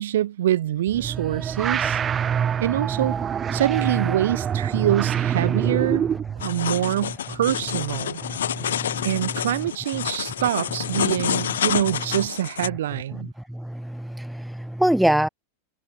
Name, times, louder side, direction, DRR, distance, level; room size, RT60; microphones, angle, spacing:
voice 1, 0.0-2.0 2.6-3.2 3.5-6.0 6.4-8.2 9.0-13.3, right 12 dB, 60° right, 4.8 m, -25 dB
sound 1, 0.9-6.4, right 8 dB, 25° right, 4.3 m, -25 dB
sound 2, 6.4-12.7, left 10 dB, 65° left, 6.7 m, -28 dB
voice 2, 8.2-9.1 13.5-15.3, right 1 dB, ahead, 2.5 m, -25 dB
figure-of-eight pair, 90°, 0 cm